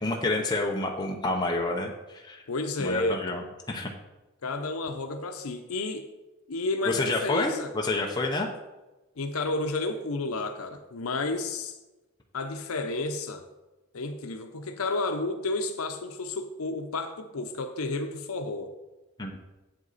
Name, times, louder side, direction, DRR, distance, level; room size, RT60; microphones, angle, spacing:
voice 1, 0.0-2.4 2.8-3.9 6.9-8.5 19.2-19.4, left 2 dB, 20° left, 0 dB, 0.7 m, -29 dB
voice 2, 2.5-3.2 4.4-6.1 6.5-7.7 9.2-11.8 12.3-13.4 13.9-18.7, left 2 dB, 85° left, 6 dB, 0.7 m, -31 dB
8.1 x 7.9 x 4.1 m, 1.1 s
head